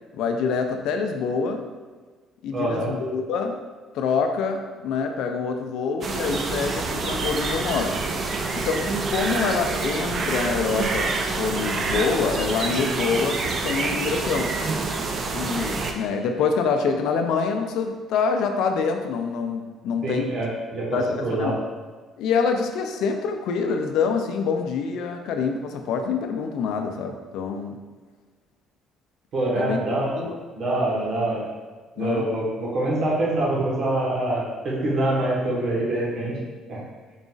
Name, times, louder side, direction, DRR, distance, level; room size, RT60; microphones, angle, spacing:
voice 1, 0.1-1.7 2.4-3.6 3.9-8.0 8.5-11.1 11.4-14.5 15.3-20.3 20.9-21.6 22.2-27.8 29.6-29.8 30.2-30.4 32.0-32.3, left 5 dB, 75° left, 5 dB, 0.4 m, -26 dB
voice 2, 2.5-2.9 20.0-21.6 29.3-30.1 30.5-31.5 32.0-36.4 36.7-36.8, right 1 dB, 60° right, -5 dB, 1.3 m, -25 dB
sound 1, 6.0-15.9, right 3 dB, 40° right, 0.4 m, -27 dB
3.9 x 3.8 x 2.5 m, 1.4 s
cardioid pair, 110°, 0 cm